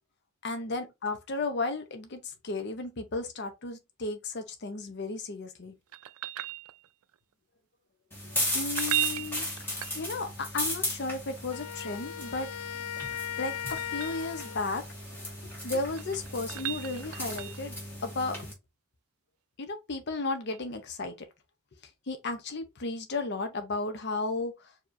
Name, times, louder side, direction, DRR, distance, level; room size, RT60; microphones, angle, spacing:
voice 1, 0.4-5.8 8.5-12.5 13.4-14.9 15.6-18.4 19.6-21.3 22.1-24.7, left 3 dB, 50° left, 0.7 m, -34 dB
sound 1, 5.9-7.1 8.6-10.5 12.6-14.2 15.7-17.8 20.5-20.6, right 16 dB, 90° right, 0.3 m, -36 dB
sound 2, 8.1-18.5, left 1 dB, 10° left, 1.6 m, -36 dB
Wind instrument woodwind instrument, 11.5-14.9, left 11 dB, 85° left, 0.3 m, -38 dB
4.6 x 2.9 x 2.5 m
head